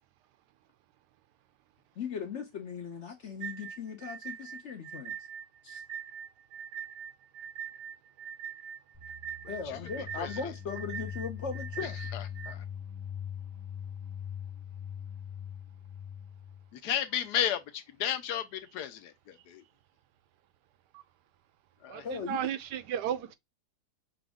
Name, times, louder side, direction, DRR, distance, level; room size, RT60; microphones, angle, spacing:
voice 1, 2.0-5.3 5.6-5.8 9.5-12.0 22.0-22.5, left 6 dB, 55° left, 0.9 m, -38 dB
sound 1, 3.4-12.5, right 8 dB, 55° right, 0.9 m, -42 dB
sound 2, 8.9-16.7, left 9 dB, 25° left, 1.2 m, -41 dB
voice 2, 12.1-12.6 16.7-19.6 21.8-22.1, left 9 dB, 75° left, 1.3 m, -33 dB
voice 3, 22.3-23.4, right 10 dB, 80° right, 1.2 m, -33 dB
6.0 x 2.5 x 3.4 m
omnidirectional pair, 1.8 m